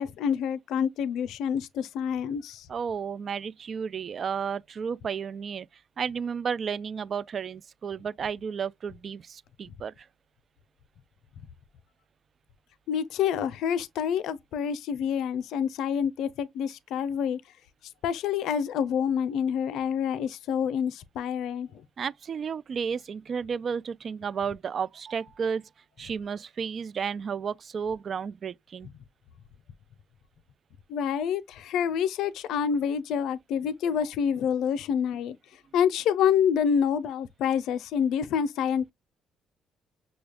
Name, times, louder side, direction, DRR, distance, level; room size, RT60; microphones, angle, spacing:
voice 1, 0.0-2.7 12.9-17.4 18.0-21.8 30.9-35.4 35.7-38.9, left 8 dB, 80° left, 0.5 m, -27 dB
voice 2, 2.7-5.7 6.0-9.9 22.0-25.6 26.0-28.9, right 6 dB, 50° right, 0.3 m, -32 dB
6.1 x 2.3 x 3.3 m
cardioid pair, 95°, 0 cm